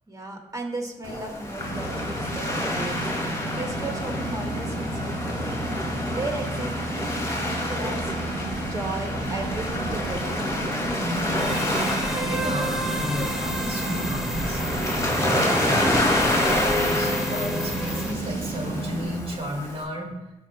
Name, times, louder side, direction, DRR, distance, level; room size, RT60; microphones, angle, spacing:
voice 1, 0.1-3.0 3.6-5.5 6.1-7.2 7.6-11.0, right 2 dB, 25° right, 2 dB, 2.0 m, -36 dB
Waves surf, 1.0-19.8, left 1 dB, 20° left, 2.4 m, -28 dB
sound 1, 1.6-19.2, right 2 dB, 90° right, 1.2 m, -32 dB
voice 2, 11.0-14.6 15.2-15.9 16.4-20.2, equal, 40° right, 1 dB, 2.1 m, -33 dB
sound 2, 11.4-18.1, equal, 5° right, 1.2 m, -30 dB
14.0 x 5.2 x 2.3 m, 0.99 s
cardioid pair, 60°, 14 cm